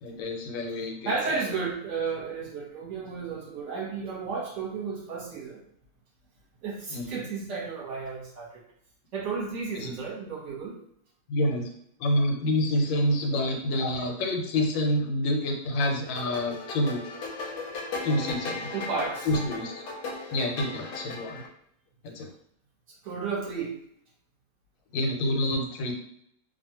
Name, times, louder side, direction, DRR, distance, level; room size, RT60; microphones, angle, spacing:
voice 1, 0.0-1.1 6.9-7.3 9.8-9.9 11.3-11.7 12.0-17.0 18.0-18.7 19.3-19.7 20.3-21.4 22.0-22.3 24.9-25.9, left 1 dB, 90° left, 2 dB, 1.3 m, -27 dB
voice 2, 1.0-5.6 6.6-8.5 9.1-10.8 18.7-19.3 23.0-23.8, right 5 dB, 50° right, -4 dB, 1.0 m, -33 dB
sound 1, 15.8-21.5, left 3 dB, 70° left, 0.9 m, -37 dB
2.9 x 2.4 x 2.8 m, 0.70 s
omnidirectional pair, 2.0 m